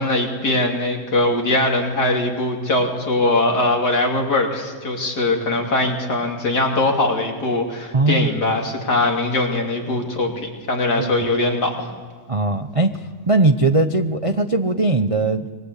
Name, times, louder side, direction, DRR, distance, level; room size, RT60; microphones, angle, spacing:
voice 1, 0.0-11.9, left 2 dB, 65° left, 1 dB, 3.6 m, -21 dB
voice 2, 7.9-8.3 11.0-11.1 12.3-15.5, right 2 dB, 30° right, 7 dB, 0.6 m, -19 dB
26.5 x 22.5 x 8.3 m, 1.5 s
omnidirectional pair, 1.9 m